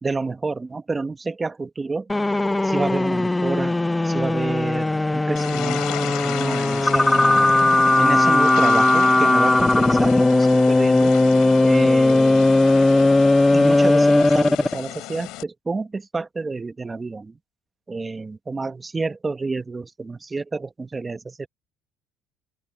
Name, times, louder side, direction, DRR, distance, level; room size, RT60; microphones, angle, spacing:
voice 1, 0.0-2.1 2.6-3.8 4.0-7.6 8.0-11.1 11.6-12.5 13.5-17.4 17.9-21.5, right 3 dB, 20° right, 1.2 m, -29 dB
sound 1, 2.1-14.8, left 2 dB, 10° left, 0.7 m, -18 dB
sound 2, 5.4-15.4, left 18 dB, 75° left, 7.4 m, -35 dB
open air
cardioid pair, 115°, 0 cm